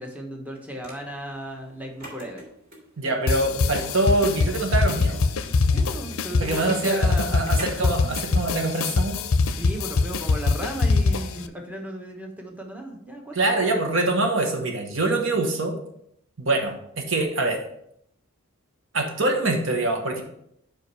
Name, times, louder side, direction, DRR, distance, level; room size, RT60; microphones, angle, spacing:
voice 1, 0.0-2.4 5.7-8.1 9.6-13.7, right 1 dB, 5° right, 1 dB, 1.0 m, -36 dB
sound 1, 0.8-8.0, right 1 dB, 45° right, 2.4 m, -44 dB
voice 2, 3.0-5.2 6.4-9.2 13.3-15.8 16.4-17.6 18.9-20.2, right 2 dB, 65° right, 3 dB, 1.2 m, -24 dB
sound 2, 3.3-11.5, left 3 dB, 70° left, 0.5 m, -23 dB
5.2 x 4.9 x 5.5 m, 0.72 s
head